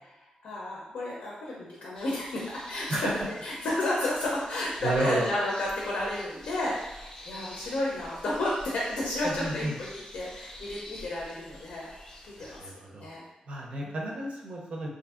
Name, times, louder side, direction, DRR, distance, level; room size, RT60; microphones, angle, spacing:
voice 1, 0.4-3.0 3.4-11.9 12.4-12.7 13.0-13.2 13.8-14.0, left 1 dB, 85° left, -4 dB, 0.5 m, -32 dB
sound 1, 2.0-12.6, left 1 dB, 35° left, 0.5 m, -48 dB
voice 2, 4.8-5.3 9.2-9.7 12.4-13.1 13.5-14.9, right 2 dB, 55° right, -1 dB, 0.5 m, -31 dB
2.6 x 2.6 x 2.4 m, 1.0 s
wide cardioid pair, 130°, 2 cm